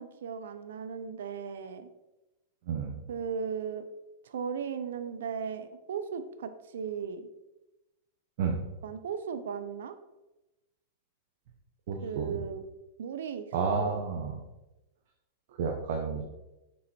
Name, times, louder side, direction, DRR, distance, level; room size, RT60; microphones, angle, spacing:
voice 1, 0.0-1.9 3.1-3.8 4.2-7.3 8.8-10.0 12.0-12.6 13.0-13.5 13.7-14.0, right 6 dB, 90° right, 10 dB, 0.7 m, -36 dB
voice 2, 2.7-3.0 8.4-8.6 11.9-12.4 13.5-14.3 15.5-16.2, right 5 dB, 55° right, 2 dB, 0.9 m, -31 dB
7.0 x 4.7 x 4.4 m, 1.0 s
supercardioid pair, 165°, 0 cm